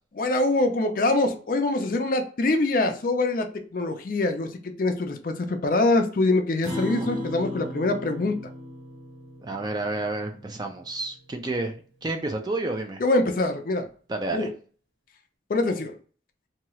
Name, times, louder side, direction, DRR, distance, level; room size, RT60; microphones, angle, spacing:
voice 1, 0.2-8.4 13.0-13.9 14.3-14.5 15.5-15.9, left 2 dB, 45° left, 6 dB, 0.4 m, -24 dB
Acoustic guitar, 6.6-11.3, left 1 dB, 80° right, 1.2 m, -37 dB
voice 2, 9.4-13.0 14.1-14.5, right 2 dB, 20° right, 4 dB, 0.4 m, -30 dB
2.8 x 2.3 x 3.0 m, 0.42 s
head